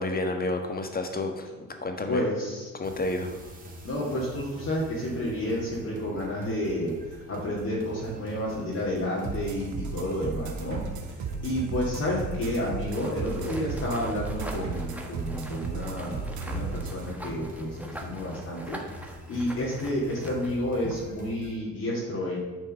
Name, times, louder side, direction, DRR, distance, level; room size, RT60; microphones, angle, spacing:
voice 1, 0.0-2.2 2.8-3.3, left 2 dB, 30° left, 5 dB, 1.5 m, -30 dB
voice 2, 2.1-2.7 3.8-22.4, left 1 dB, 55° left, -6 dB, 2.4 m, -31 dB
sound 1, 2.8-21.6, equal, 30° right, 2.4 m, -46 dB
sound 2, 9.2-17.0, right 5 dB, 70° right, 1.4 m, -35 dB
sound 3, 12.9-21.1, equal, 5° right, 1.4 m, -41 dB
9.7 x 4.4 x 7.3 m, 1.3 s
cardioid pair, 90°, 30 cm